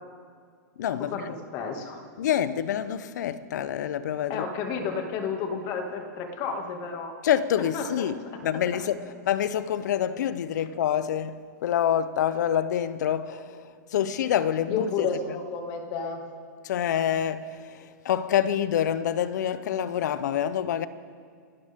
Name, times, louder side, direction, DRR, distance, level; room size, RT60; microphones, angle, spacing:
voice 1, 0.8-1.3 2.2-4.5 7.2-9.0 9.3-15.1 16.6-20.9, left 10 dB, 70° left, 0.8 m, -27 dB
voice 2, 1.5-2.0 4.3-7.1 7.7-8.4 14.7-16.2, left 5 dB, 40° left, 2.2 m, -31 dB
29.0 x 12.5 x 3.7 m
hypercardioid pair, 130°, 10 cm